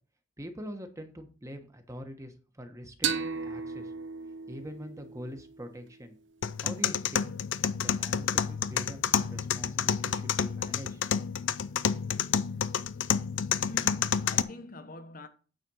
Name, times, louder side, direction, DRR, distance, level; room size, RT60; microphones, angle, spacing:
voice 1, 0.4-3.9 4.5-6.2 6.6-7.3 7.8-11.0, equal, 15° right, 1.2 m, -44 dB
sound 1, 3.0-6.4, right 6 dB, 90° right, 0.9 m, -36 dB
sound 2, 6.4-14.4, left 8 dB, 90° left, 0.5 m, -29 dB
voice 2, 13.5-15.3, left 2 dB, 50° left, 1.1 m, -44 dB
9.0 x 4.3 x 6.3 m
head